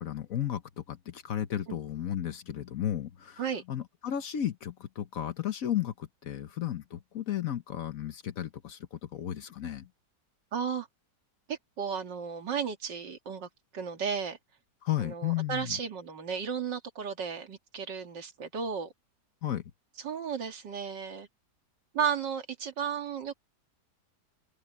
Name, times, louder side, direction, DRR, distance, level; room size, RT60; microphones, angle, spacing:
voice 1, 0.0-3.4 3.7-9.9 14.8-15.7 19.4-19.6, left 11 dB, 60° left, 1.2 m, -34 dB
voice 2, 10.5-10.9 11.5-14.4 15.0-18.9 20.0-21.3 21.9-23.5, right 7 dB, 80° right, 2.5 m, -34 dB
omnidirectional pair, 1.9 m